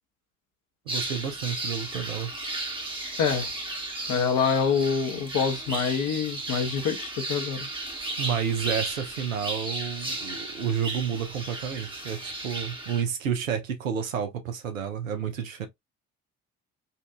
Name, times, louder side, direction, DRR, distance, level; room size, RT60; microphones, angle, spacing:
sound 1, 0.9-13.0, right 2 dB, 15° right, 1.0 m, -34 dB
voice 1, 0.9-2.3 8.2-15.7, right 8 dB, 85° right, 0.7 m, -30 dB
voice 2, 3.2-3.5 4.1-7.7, left 6 dB, 50° left, 1.0 m, -26 dB
4.1 x 2.5 x 2.2 m
figure-of-eight pair, 45°, 39 cm